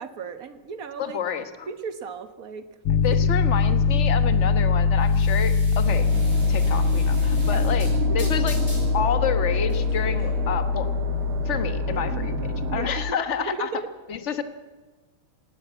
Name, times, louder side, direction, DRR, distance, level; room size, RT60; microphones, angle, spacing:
voice 1, 0.0-1.2 1.7-2.7 3.1-3.3 7.5-7.6 8.1-8.4 12.1-12.3 12.6-13.9, right 5 dB, 45° right, 10 dB, 1.4 m, -35 dB
voice 2, 1.0-1.7 3.0-6.1 6.5-7.9 8.1-8.6 8.9-10.9 11.4-12.4 12.7-13.7 14.1-14.4, left 7 dB, 40° left, 10 dB, 1.3 m, -29 dB
Piano, 2.9-13.1, left 5 dB, 85° left, 1.8 m, -23 dB
sound 1, 3.4-11.4, left 1 dB, 20° left, 6.9 m, -44 dB
sound 2, 5.9-12.8, right 6 dB, 90° right, 2.3 m, -33 dB
18.0 x 18.0 x 8.3 m, 1.3 s
omnidirectional pair, 2.3 m